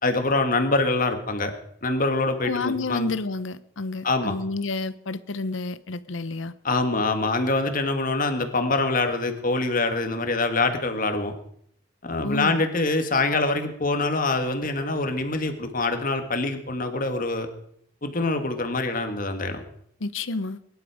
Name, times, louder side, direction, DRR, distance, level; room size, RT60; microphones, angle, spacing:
voice 1, 0.0-1.5 1.8-3.1 4.0-4.4 6.6-11.3 12.0-17.5 18.0-19.6, left 3 dB, 45° left, 7 dB, 2.0 m, -25 dB
voice 2, 2.4-6.5 12.2-12.6 20.0-20.6, left 3 dB, 80° left, 15 dB, 0.9 m, -30 dB
22.5 x 11.5 x 5.1 m, 0.67 s
head